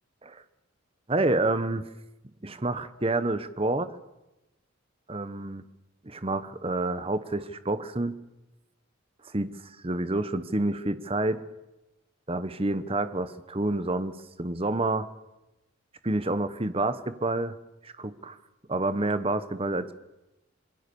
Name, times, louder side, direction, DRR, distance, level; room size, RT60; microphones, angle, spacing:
voice 1, 1.1-1.9 2.4-3.9 5.1-5.6 6.0-8.1 9.2-9.5 9.8-11.4 12.3-15.1 16.0-17.5 17.8-18.4 18.7-19.9, right 2 dB, 25° right, 12 dB, 1.0 m, -28 dB
26.5 x 21.0 x 7.0 m, 0.98 s
head